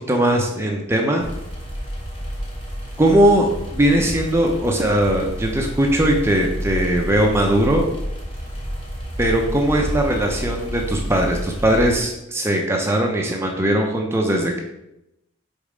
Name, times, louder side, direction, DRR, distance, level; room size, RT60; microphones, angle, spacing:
voice 1, 0.1-1.3 3.0-7.9 9.2-14.6, right 1 dB, 10° right, 1 dB, 0.6 m, -19 dB
sound 1, 1.2-12.0, equal, 25° left, 1.4 m, -30 dB
5.4 x 4.1 x 4.9 m, 0.87 s
head